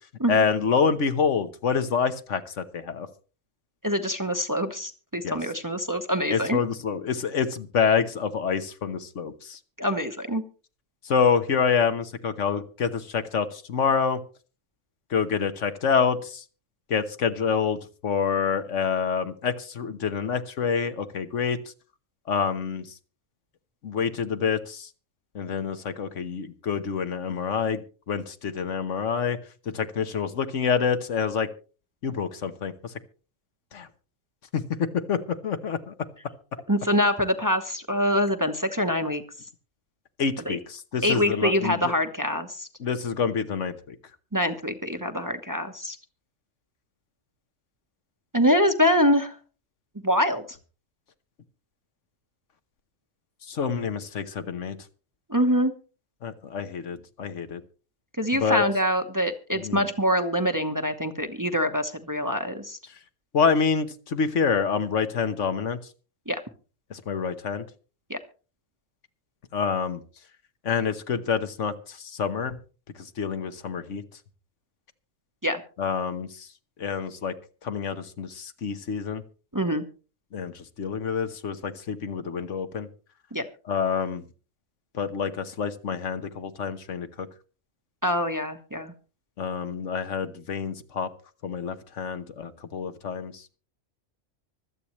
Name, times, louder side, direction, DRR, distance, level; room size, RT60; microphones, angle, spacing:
voice 1, 0.3-3.1 5.2-5.3 6.3-9.6 11.1-14.2 15.1-16.3 16.9-21.6 22.3-22.8 23.8-24.9 25.3-27.8 28.1-29.4 29.7-31.5 32.0-32.7 33.7-33.9 34.5-35.9 40.2-41.9 42.8-43.9 53.5-54.8 56.2-57.6 58.3-58.6 59.6-59.8 63.3-65.8 66.9-67.6 69.5-70.0 70.6-71.7 72.1-72.6 73.2-74.0 75.8-76.3 76.8-77.3 77.6-79.2 80.3-80.5 80.8-82.9 83.7-84.2 85.0-87.3 89.4-91.1 91.4-93.3, left 6 dB, 70° left, 9 dB, 1.4 m, -27 dB
voice 2, 3.8-6.6 9.8-10.4 36.7-39.2 40.4-40.6 41.0-42.7 44.3-46.0 48.3-49.3 50.0-50.4 55.3-55.7 58.2-62.8 66.3-66.4 68.1-68.2 75.4-75.6 79.5-79.8 83.3-83.5 88.0-88.9, equal, 15° right, 6 dB, 1.0 m, -25 dB
25.0 x 8.6 x 3.1 m, 0.37 s
omnidirectional pair, 1.3 m